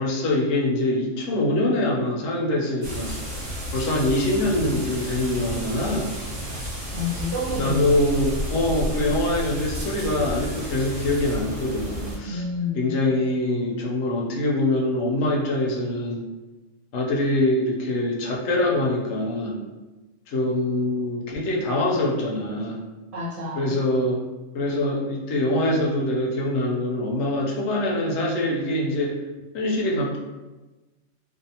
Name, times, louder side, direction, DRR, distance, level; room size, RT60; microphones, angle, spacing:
voice 1, 0.0-6.1 7.5-12.4 12.7-16.2 16.9-19.6 20.3-22.8 23.5-24.2 24.5-29.1 29.5-30.2, left 1 dB, 70° left, -2 dB, 0.9 m, -24 dB
sound 1, 2.8-12.2, equal, 40° right, 0.9 m, -32 dB
voice 2, 6.9-8.3 12.3-13.0 23.1-23.7, left 1 dB, 65° right, -6 dB, 0.8 m, -29 dB
2.5 x 2.3 x 2.7 m, 1.2 s
omnidirectional pair, 1.3 m